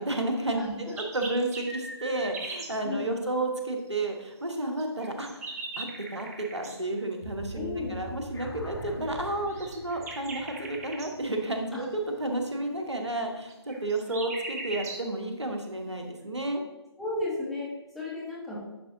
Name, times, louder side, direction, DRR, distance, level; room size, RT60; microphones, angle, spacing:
voice 1, 0.0-16.6, right 2 dB, 85° right, 3 dB, 1.2 m, -32 dB
voice 2, 0.5-0.9 2.8-3.1 7.5-8.0 11.7-11.9 17.0-18.6, left 2 dB, ahead, -8 dB, 1.1 m, -34 dB
sound 1, 0.7-2.7 4.8-6.8 9.5-11.1 13.5-15.1, right 3 dB, 35° right, 1.1 m, -39 dB
sound 2, 7.2-11.5, right 1 dB, 40° left, 1.9 m, -44 dB
sound 3, 8.3-13.1, left 1 dB, 70° left, 1.4 m, -45 dB
10.5 x 4.4 x 2.7 m, 1.1 s
figure-of-eight pair, 145°, 14 cm